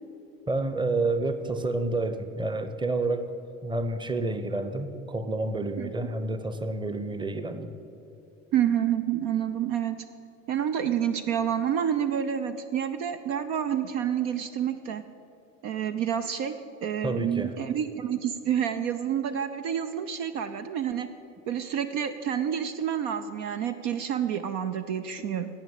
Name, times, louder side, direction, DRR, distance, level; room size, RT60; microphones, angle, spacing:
voice 1, 0.5-3.4 3.6-7.7 17.0-17.5, right 2 dB, 10° right, 10 dB, 0.9 m, -29 dB
voice 2, 8.5-10.0 10.5-15.0 15.6-21.1 21.5-25.5, right 9 dB, 50° right, 9 dB, 0.7 m, -28 dB
17.5 x 6.1 x 8.8 m, 2.8 s
figure-of-eight pair, 65°, 38 cm